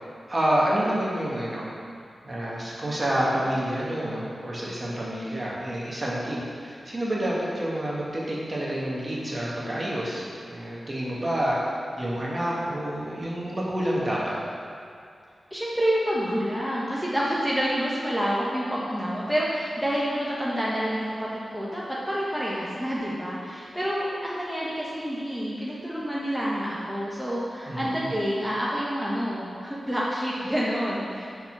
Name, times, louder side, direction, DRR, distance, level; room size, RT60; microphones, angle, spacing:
voice 1, 0.3-1.7 2.2-11.6 12.0-14.4 27.7-28.1, right 1 dB, 30° right, -6 dB, 1.7 m, -28 dB
voice 2, 15.5-31.3, equal, ahead, -7 dB, 1.1 m, -28 dB
6.5 x 4.3 x 5.9 m, 2.3 s
wide cardioid pair, 75°, 0 cm